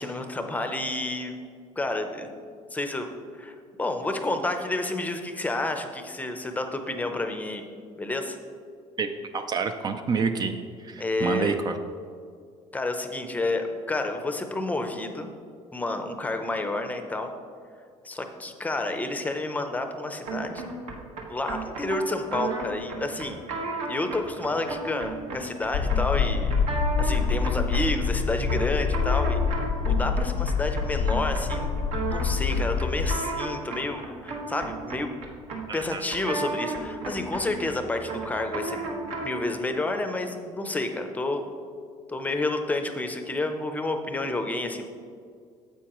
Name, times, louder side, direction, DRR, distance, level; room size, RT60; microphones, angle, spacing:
voice 1, 0.0-1.4 1.8-2.3 2.7-3.1 3.3-7.6 8.0-8.4 11.0-11.6 12.7-15.3 15.7-17.3 18.0-20.6 21.3-31.9 32.1-35.1 35.7-41.5 42.1-44.8, left 2 dB, 15° left, 6 dB, 0.6 m, -30 dB
voice 2, 9.0-11.7 35.7-36.0, right 5 dB, 35° right, 7 dB, 0.4 m, -28 dB
sound 1, 20.3-39.5, right 3 dB, 65° right, 1.4 m, -35 dB
sound 2, 25.7-33.2, left 6 dB, 60° left, 0.4 m, -26 dB
9.8 x 7.8 x 3.0 m, 2.2 s
cardioid pair, 130°, 12 cm